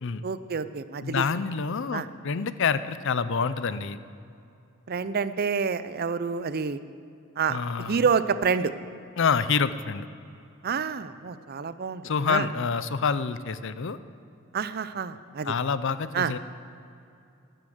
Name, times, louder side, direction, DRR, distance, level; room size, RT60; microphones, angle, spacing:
voice 1, 0.2-1.2 1.9-2.1 4.9-6.8 7.4-7.6 7.9-8.7 10.6-12.5 14.5-15.5 16.1-16.3, right 5 dB, 45° right, 13 dB, 0.5 m, -28 dB
voice 2, 1.0-4.0 7.5-8.1 9.2-10.1 12.0-14.0 15.4-16.4, left 5 dB, 60° left, 14 dB, 0.5 m, -27 dB
12.5 x 11.0 x 7.8 m, 2.6 s
head